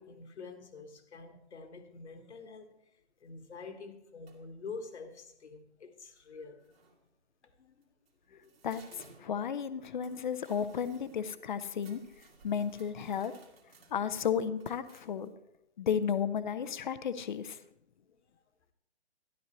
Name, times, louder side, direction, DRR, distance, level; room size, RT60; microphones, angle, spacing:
voice 1, 0.0-6.7 7.4-7.8 8.3-8.6 8.9-9.0 18.1-18.2, left 4 dB, 75° left, 1.5 m, -47 dB
sound 1, 4.3-4.6 6.2-6.3 6.6-7.1 7.8-15.3, right 4 dB, 60° right, 2.3 m, -60 dB
voice 2, 8.6-12.0 12.4-13.3 13.9-15.3 15.8-17.6, left 7 dB, 45° left, 0.6 m, -33 dB
12.5 x 11.5 x 3.0 m
hypercardioid pair, 155°, 35 cm